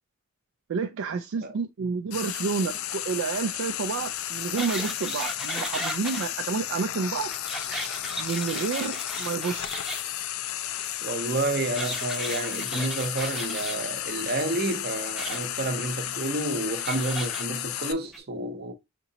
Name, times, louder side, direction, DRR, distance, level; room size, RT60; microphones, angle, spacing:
voice 1, 0.7-7.3 8.2-9.7, right 5 dB, 60° right, 0.3 m, -30 dB
Frying (food), 2.1-17.9, left 12 dB, 70° left, 0.4 m, -33 dB
sound 1, 4.6-6.3 7.3-10.0 11.7-13.8 15.1-15.4 16.8-17.4 18.1-18.2, right 1 dB, ahead, 0.6 m, -35 dB
voice 2, 11.0-18.7, right 2 dB, 45° right, 0.7 m, -30 dB
5.2 x 2.8 x 2.7 m
head